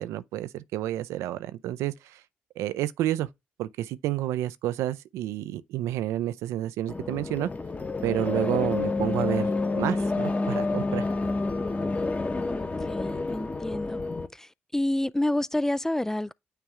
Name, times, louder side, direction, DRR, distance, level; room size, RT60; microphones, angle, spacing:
voice 1, 0.0-2.2 2.6-3.3 3.6-7.5 8.0-11.1, right 13 dB, 75° right, 0.5 m, -30 dB
sound 1, 6.9-14.3, left 3 dB, 30° left, 1.1 m, -29 dB
voice 2, 12.5-14.0 14.3-16.3, left 1 dB, 10° left, 0.3 m, -29 dB
9.0 x 3.5 x 3.1 m
hypercardioid pair, 40°, 5 cm